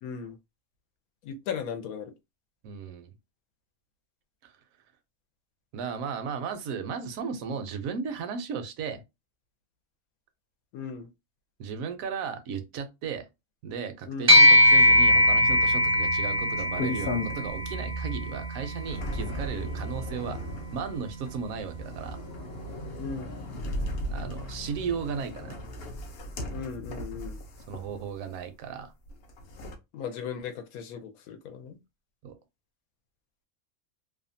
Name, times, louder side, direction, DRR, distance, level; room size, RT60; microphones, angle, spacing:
voice 1, 0.0-0.4 1.2-2.1 10.7-11.1 14.1-14.3 23.0-23.3 26.5-27.4 29.9-31.8, left 6 dB, 90° left, 1.1 m, -37 dB
voice 2, 2.6-3.1 4.4-4.6 5.7-9.0 11.6-13.3 13.6-22.2 24.1-25.6 27.7-28.9 32.2-32.4, right 6 dB, 75° right, 1.0 m, -35 dB
sound 1, 14.3-23.9, left 1 dB, 35° right, 0.5 m, -24 dB
sound 2, 16.6-17.7 18.1-28.4 29.1-29.8, left 2 dB, 60° left, 0.6 m, -37 dB
2.7 x 2.2 x 2.6 m
omnidirectional pair, 1.5 m